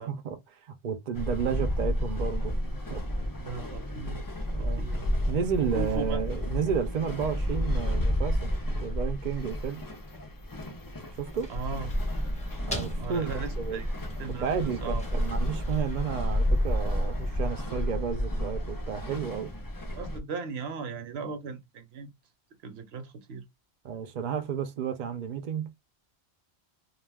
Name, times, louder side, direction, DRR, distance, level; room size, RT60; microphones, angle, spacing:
voice 1, 0.0-2.6 2.9-3.0 4.5-4.8 5.3-9.9 11.2-11.5 12.6-13.8 14.4-19.5 23.8-25.7, right 7 dB, 55° right, 0.6 m, -32 dB
sound 1, 1.1-20.2, equal, 35° left, 0.3 m, -31 dB
voice 2, 3.4-4.2 4.6-5.1 5.6-6.2 11.5-11.9 13.0-13.9 14.2-15.0 19.9-22.1 22.6-23.4, right 5 dB, 70° right, 0.9 m, -38 dB
sound 2, 11.1-17.1, left 1 dB, 5° left, 0.8 m, -43 dB
2.4 x 2.2 x 3.3 m
omnidirectional pair, 1.1 m